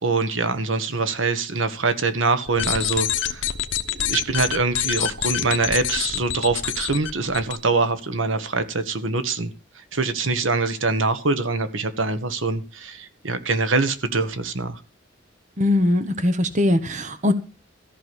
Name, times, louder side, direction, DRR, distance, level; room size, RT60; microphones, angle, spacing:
voice 1, 0.0-3.5 3.9-14.8, right 3 dB, 80° right, 1.5 m, -24 dB
sound 1, 2.5-7.6, left 10 dB, 70° left, 1.0 m, -26 dB
voice 2, 15.6-17.3, left 1 dB, 40° right, 1.1 m, -20 dB
14.5 x 6.3 x 7.9 m
head